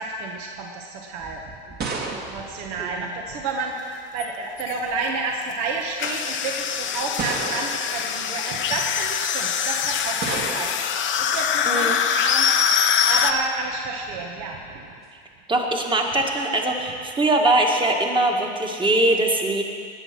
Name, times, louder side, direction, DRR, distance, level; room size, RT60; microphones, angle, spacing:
voice 1, 0.0-12.6 13.0-14.9, right 3 dB, 55° right, 0 dB, 1.7 m, -30 dB
sound 1, 1.2-3.5 4.6-5.0 5.9-6.0 7.2-8.0 10.2-10.9, right 4 dB, 30° right, 2.0 m, -32 dB
voice 2, 2.8-3.1 11.7-12.0 15.5-19.6, right 2 dB, 15° right, 1 dB, 1.9 m, -22 dB
sound 2, 4.2-4.3 4.6-4.7 6.0-13.3, left 8 dB, 35° left, 0.9 m, -23 dB
20.0 x 7.7 x 6.1 m, 2.2 s
hypercardioid pair, 110°, 33 cm